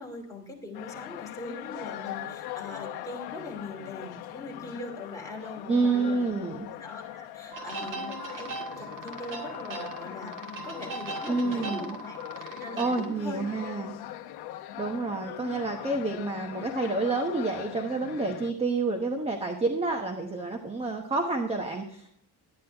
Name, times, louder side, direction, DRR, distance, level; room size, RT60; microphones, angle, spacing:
voice 1, 0.0-6.3 6.8-10.3 10.6-13.7, left 2 dB, 10° left, -2 dB, 2.7 m, -41 dB
sound 1, 0.7-18.5, left 12 dB, 75° left, 0.9 m, -41 dB
voice 2, 5.7-6.7 11.3-12.0 12.8-13.9 14.8-22.1, right 3 dB, 15° right, 3 dB, 1.0 m, -29 dB
sound 2, 7.5-13.1, right 2 dB, 50° right, 2.0 m, -39 dB
11.5 x 10.5 x 3.5 m, 0.71 s
cardioid pair, 150°, 39 cm